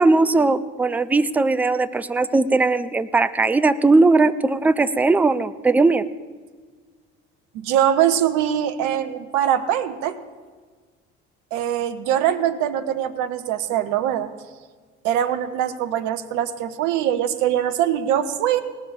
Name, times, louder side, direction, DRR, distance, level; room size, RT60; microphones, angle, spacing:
voice 1, 0.0-6.1, right 3 dB, 5° right, 13 dB, 0.3 m, -18 dB
voice 2, 7.5-10.2 11.5-14.3 15.0-18.6, right 10 dB, 55° right, 11 dB, 0.9 m, -22 dB
18.5 x 6.7 x 6.7 m, 1.5 s
figure-of-eight pair, 55°, 36 cm